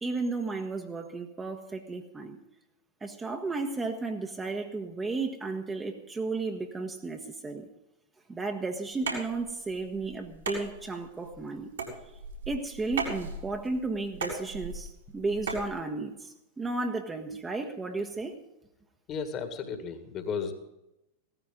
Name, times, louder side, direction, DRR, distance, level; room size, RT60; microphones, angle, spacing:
voice 1, 0.0-2.4 3.0-7.7 8.3-11.7 12.5-18.4, right 3 dB, 15° right, 4 dB, 1.4 m, -33 dB
sound 1, 8.9-15.7, right 4 dB, 70° right, 4.4 m, -38 dB
voice 2, 19.1-20.5, left 6 dB, 35° left, 8 dB, 2.0 m, -34 dB
17.0 x 14.0 x 3.9 m, 0.90 s
figure-of-eight pair, 90°, 0 cm